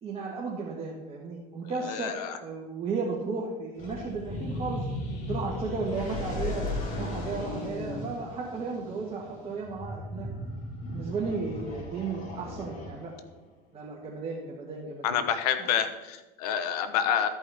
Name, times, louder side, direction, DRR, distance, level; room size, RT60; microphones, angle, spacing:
voice 1, 0.0-4.8 5.2-6.7 7.0-10.3 10.9-13.1 13.7-15.2 15.6-15.7, right 4 dB, 30° right, -3 dB, 1.5 m, -34 dB
voice 2, 1.9-2.4 15.0-17.3, left 8 dB, 80° left, 9 dB, 1.0 m, -28 dB
sound 1, 3.8-13.3, left 1 dB, 40° left, 2.8 m, -36 dB
13.5 x 5.3 x 3.5 m, 1.1 s
supercardioid pair, 110°, 19 cm